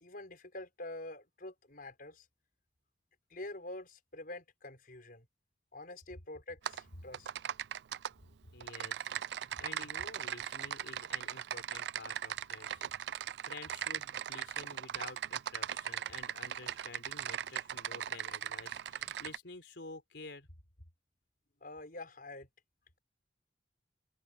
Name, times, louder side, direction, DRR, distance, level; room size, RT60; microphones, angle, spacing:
voice 1, 0.0-2.3 3.3-5.3 5.7-7.3 21.6-22.5, left 2 dB, 55° left, 5.6 m, -46 dB
Typing, 6.7-6.8 7.1-8.1 8.6-19.4, right 10 dB, 70° right, 0.4 m, -39 dB
voice 2, 8.5-13.2 13.5-20.5, left 3 dB, 85° left, 3.9 m, -50 dB
open air
head